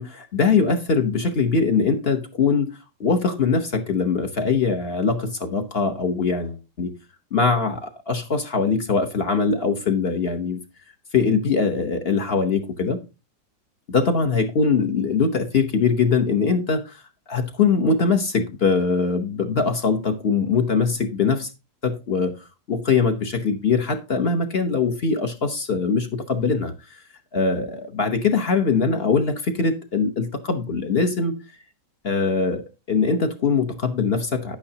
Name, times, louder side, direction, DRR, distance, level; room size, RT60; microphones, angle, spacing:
voice 1, 0.0-2.7 3.0-6.9 7.3-10.6 11.1-13.0 13.9-17.0 17.3-21.5 21.8-22.3 22.7-27.0 27.3-31.4 32.0-34.6, left 5 dB, 45° left, 0.9 m, -22 dB
10.0 x 8.7 x 2.8 m
omnidirectional pair, 1.9 m